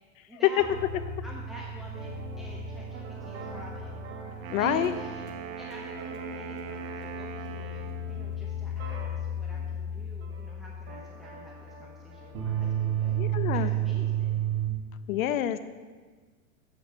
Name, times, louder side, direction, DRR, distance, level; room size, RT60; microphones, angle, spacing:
voice 1, 0.3-0.8 1.2-4.0 4.6-5.2 5.6-6.6 7.0-13.1 13.5-14.4, right 1 dB, ahead, -3 dB, 0.7 m, -48 dB
sound 1, 0.6-14.7, right 5 dB, 35° right, 2.5 m, -33 dB
Wind instrument woodwind instrument, 4.3-8.3, right 8 dB, 80° right, 1.0 m, -42 dB
voice 2, 4.5-4.9 13.2-13.7 15.1-15.6, left 12 dB, 80° left, 13 dB, 0.6 m, -27 dB
7.4 x 5.9 x 6.7 m, 1.4 s
supercardioid pair, 135°, 40 cm